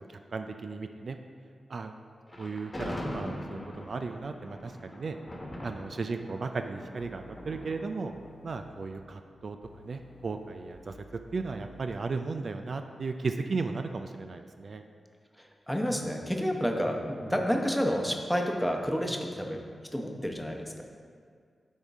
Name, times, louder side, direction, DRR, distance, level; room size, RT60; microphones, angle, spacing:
voice 1, 0.1-1.2 1.7-1.9 2.4-5.2 5.6-8.1 8.4-9.6 9.8-10.9 11.3-14.8, right 4 dB, 65° right, 6 dB, 0.3 m, -35 dB
Thunder, 2.3-9.5, left 1 dB, 30° left, 1.2 m, -42 dB
sound 1, 7.0-7.7 8.1-9.0 9.6-12.0, left 2 dB, 55° left, 1.1 m, -54 dB
voice 2, 15.4-19.6 19.9-20.8, equal, 5° left, 2 dB, 0.9 m, -30 dB
10.0 x 3.7 x 3.5 m, 2.1 s
cardioid pair, 45°, 0 cm